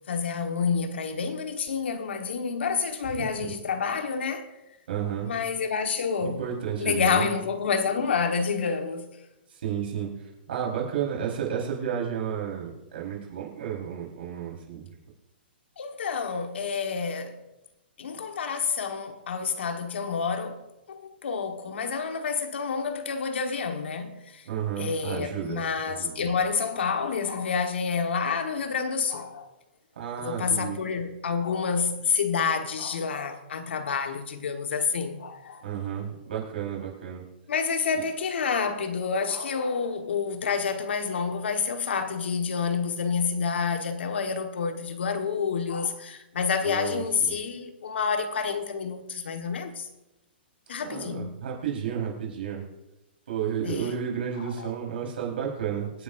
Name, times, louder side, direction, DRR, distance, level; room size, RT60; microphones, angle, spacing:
voice 1, 0.1-4.5 5.2-6.4 6.8-9.1 15.8-17.4 18.0-20.6 20.9-24.4 24.8-29.5 30.2-35.6 37.5-49.9 50.7-51.3 53.6-53.9 54.6-54.7, left 5 dB, 90° left, 1.5 m, -28 dB
voice 2, 4.9-5.3 6.2-7.3 9.5-14.9 24.4-26.2 30.0-30.8 35.6-37.2 46.6-47.3 50.8-52.6 53.3-56.0, right 8 dB, 65° right, 4.4 m, -32 dB
25.0 x 9.5 x 2.7 m
hypercardioid pair, 175°, 6 cm